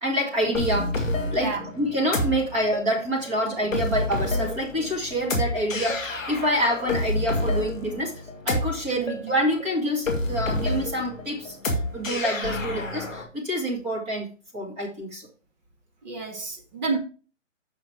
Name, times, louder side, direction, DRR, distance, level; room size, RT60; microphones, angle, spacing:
voice 1, 0.0-15.3, equal, 15° right, 1.9 m, -27 dB
sound 1, 0.5-13.2, left 2 dB, ahead, 0.6 m, -29 dB
voice 2, 16.0-17.0, right 4 dB, 35° right, 1.9 m, -30 dB
7.6 x 6.1 x 4.5 m
hypercardioid pair, 160°, 38 cm